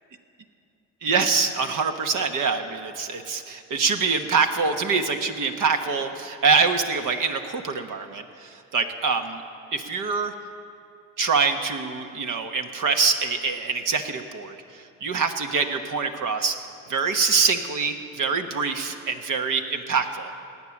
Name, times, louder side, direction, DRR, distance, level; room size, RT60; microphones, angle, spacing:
voice 1, 1.0-8.2 8.7-9.4 9.7-10.3 11.2-14.5 15.0-16.5 16.9-20.3, right 5 dB, 55° right, 6 dB, 1.2 m, -24 dB
18.0 x 8.9 x 7.2 m, 2.4 s
hypercardioid pair, 65°, 39 cm